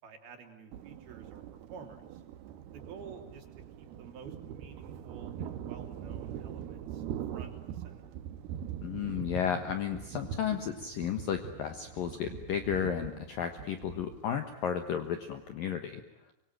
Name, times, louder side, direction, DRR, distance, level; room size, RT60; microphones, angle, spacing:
voice 1, 0.0-2.2 2.7-3.5 3.8-7.0 7.3-8.1, right 5 dB, 50° right, 4 dB, 4.8 m, -51 dB
Thunder, 0.7-15.5, right 9 dB, 75° right, 2.4 m, -42 dB
voice 2, 8.8-16.0, left 8 dB, 75° left, 7 dB, 2.1 m, -33 dB
26.0 x 24.0 x 9.2 m, 0.85 s
omnidirectional pair, 6.0 m